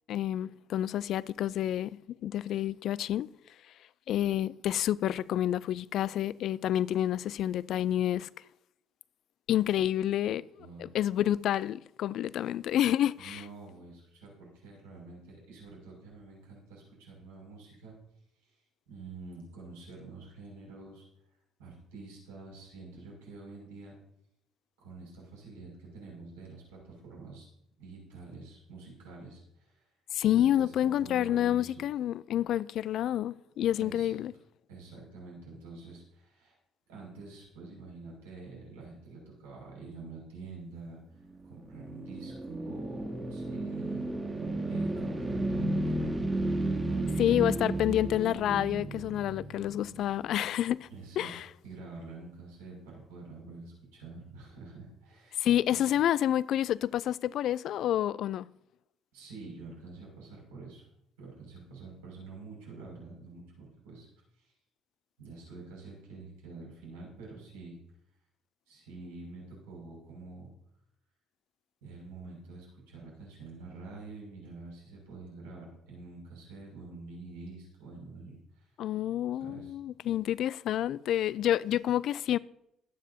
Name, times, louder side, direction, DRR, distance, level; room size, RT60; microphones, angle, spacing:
voice 1, 0.1-3.3 4.1-8.3 9.5-13.4 30.1-34.3 47.2-50.9 51.2-51.5 55.4-58.5 78.8-82.4, left 11 dB, 60° left, 0.4 m, -29 dB
voice 2, 10.6-10.9 13.2-18.0 18.4-18.6 18.9-21.1 21.6-24.0 24.8-27.5 27.8-29.9 30.3-31.7 33.8-34.2 34.7-36.6 36.9-44.4 44.7-47.5 50.9-51.3 51.6-55.8 59.1-60.9 61.2-64.1 64.3-64.5 65.2-67.8 68.7-70.5 71.8-78.7 79.3-79.7, right 3 dB, 80° right, 5.9 m, -47 dB
sound 1, 41.2-50.5, right 1 dB, 20° right, 2.6 m, -33 dB
22.0 x 9.4 x 2.7 m
hypercardioid pair, 50°, 0 cm